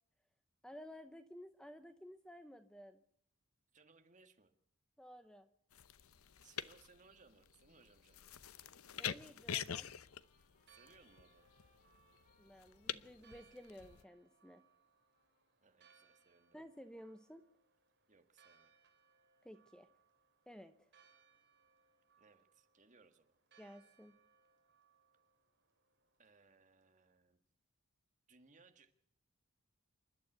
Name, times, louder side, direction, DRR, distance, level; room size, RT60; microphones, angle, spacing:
voice 1, 0.6-3.0 5.0-5.5 9.0-9.9 12.4-14.6 16.5-17.4 19.4-19.9 20.5-20.9 23.6-24.2, equal, 5° left, 9 dB, 0.8 m, -54 dB
voice 2, 3.7-4.5 6.4-8.3 10.7-11.5 15.6-16.6 18.1-18.7 22.2-23.4 26.2-27.4 28.3-28.9, right 4 dB, 35° right, 7 dB, 1.8 m, -66 dB
sound 1, 5.7-14.0, left 9 dB, 75° left, 0.8 m, -46 dB
Trumpet, 9.3-16.6, left 3 dB, 40° left, 4.5 m, -79 dB
Church bell, 10.5-27.2, right 6 dB, 50° right, 3.1 m, -71 dB
28.0 x 12.0 x 8.0 m, 0.66 s
head